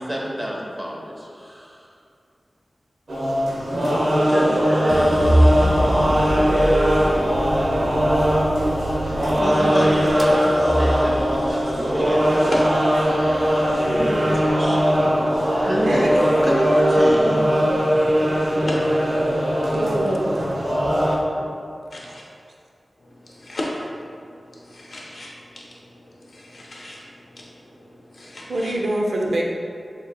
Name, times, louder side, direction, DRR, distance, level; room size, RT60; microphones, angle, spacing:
voice 1, 0.0-1.9 4.3-5.2 9.4-12.4 13.6-15.0 15.6-16.1 16.4-17.7, equal, 20° right, -4 dB, 1.0 m, -28 dB
sound 1, 3.1-21.2, equal, 75° right, 0.9 m, -20 dB
sound 2, 4.9-15.1 15.5-16.3, equal, 20° left, 0.7 m, -25 dB
voice 2, 15.9-17.0 19.7-21.0 28.5-29.4, right 1 dB, 90° right, -1 dB, 0.5 m, -25 dB
voice 3, 24.7-25.3 26.3-27.0 28.1-28.7, left 1 dB, 70° left, -4 dB, 0.6 m, -34 dB
7.1 x 3.1 x 2.3 m, 2.4 s
wide cardioid pair, 70°, 0 cm